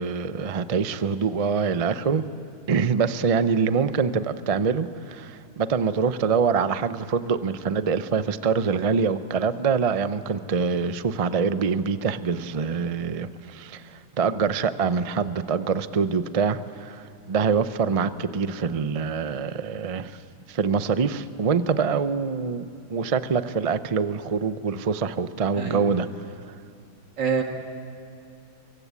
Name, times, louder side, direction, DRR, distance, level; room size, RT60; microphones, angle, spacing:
voice 1, 0.0-2.2 2.7-20.2 20.5-26.1, right 5 dB, 65° right, 12 dB, 0.3 m, -25 dB
voice 2, 25.5-25.8 27.2-27.4, right 6 dB, 90° right, 3 dB, 3.0 m, -25 dB
24.0 x 23.5 x 8.3 m, 2.6 s
omnidirectional pair, 1.9 m